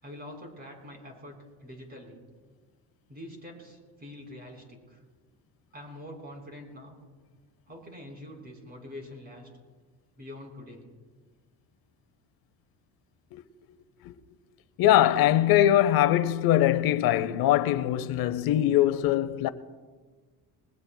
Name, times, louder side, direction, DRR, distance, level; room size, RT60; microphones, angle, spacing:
voice 1, 0.0-2.2 3.1-5.0 5.7-7.0 7.7-9.5 10.2-10.9, left 1 dB, 25° right, 4.1 m, -45 dB
voice 2, 14.8-19.5, left 12 dB, 65° left, 0.8 m, -22 dB
21.0 x 21.0 x 2.2 m
cardioid pair, 140°, 39 cm